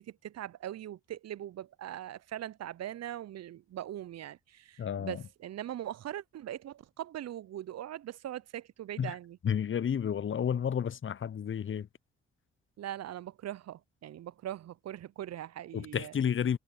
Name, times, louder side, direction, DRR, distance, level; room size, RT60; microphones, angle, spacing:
voice 1, 0.0-9.4 12.8-16.1, right 12 dB, 55° right, 0.8 m, -41 dB
voice 2, 4.8-5.2 9.0-9.1 9.4-11.9 15.7-16.6, left 8 dB, 40° left, 0.9 m, -31 dB
hypercardioid pair, 40°, 31 cm